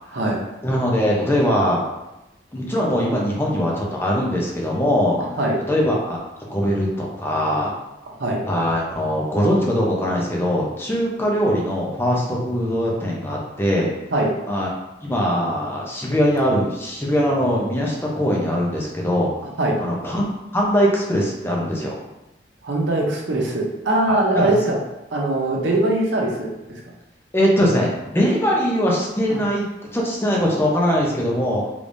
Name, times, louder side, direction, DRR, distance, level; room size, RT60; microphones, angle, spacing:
voice 1, 0.6-1.8 2.5-5.2 5.7-6.2 6.5-7.7 8.5-13.9 14.5-14.7 15.0-19.3 19.8-21.9 24.1-24.5 27.3-31.7, equal, 15° left, -3 dB, 0.6 m, -21 dB
voice 2, 5.2-5.6 8.2-8.5 14.1-14.3 19.6-19.8 22.6-24.8 25.1-26.8 29.3-29.4, right 2 dB, 85° right, -1 dB, 0.7 m, -21 dB
3.3 x 3.3 x 2.6 m, 0.97 s
head